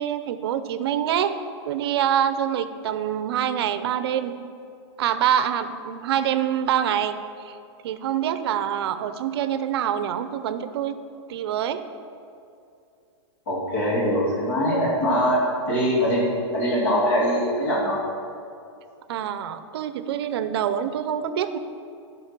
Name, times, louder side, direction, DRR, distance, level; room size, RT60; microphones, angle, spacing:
voice 1, 0.0-1.4 1.6-4.3 5.0-7.2 7.4-7.5 7.8-11.0 11.3-11.8 19.1-21.6, right 9 dB, 60° right, 11 dB, 0.6 m, -25 dB
voice 2, 13.5-15.4 15.7-18.0, equal, 50° left, -4 dB, 2.3 m, -22 dB
10.5 x 5.4 x 5.9 m, 2.6 s
hypercardioid pair, 155°, 15 cm